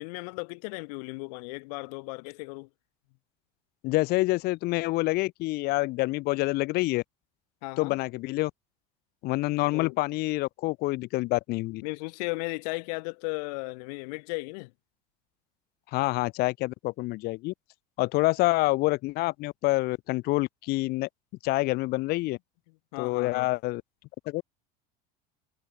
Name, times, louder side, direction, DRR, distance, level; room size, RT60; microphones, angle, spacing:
voice 1, 0.0-2.7 7.6-8.0 9.6-10.0 11.8-14.7 22.9-23.5, left 30 dB, 70° left, 3.5 m, -36 dB
voice 2, 3.8-7.0 7.8-8.5 9.2-11.8 15.9-17.5 18.0-21.1 21.4-22.4 23.0-23.8 24.3-24.4, left 21 dB, 50° left, 1.0 m, -27 dB
supercardioid pair, 140°, 21 cm